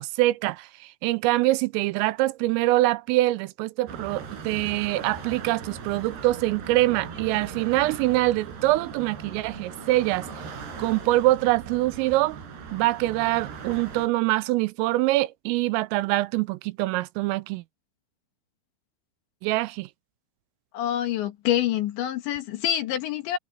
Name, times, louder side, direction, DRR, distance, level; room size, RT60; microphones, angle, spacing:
voice 1, 0.0-10.3 10.8-12.4 12.7-17.6 19.4-19.9, right 18 dB, 85° right, 3.2 m, -24 dB
sound 1, 3.9-14.1, right 5 dB, 55° right, 6.1 m, -39 dB
voice 2, 20.7-23.4, left 12 dB, 65° left, 3.7 m, -26 dB
omnidirectional pair, 5.9 m